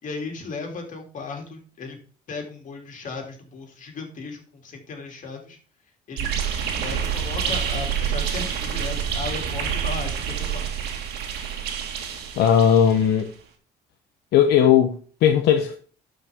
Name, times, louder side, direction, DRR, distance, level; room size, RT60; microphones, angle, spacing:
voice 1, 0.0-2.0 2.3-5.6 6.1-6.3 6.8-10.7, left 4 dB, 50° left, 3 dB, 2.9 m, -36 dB
sound 1, 6.2-13.2, right 8 dB, 75° right, 2.1 m, -28 dB
voice 2, 12.4-13.3 14.3-15.7, left 9 dB, 75° left, 5 dB, 1.0 m, -17 dB
12.5 x 5.6 x 3.6 m, 0.41 s
cardioid pair, 110°, 17 cm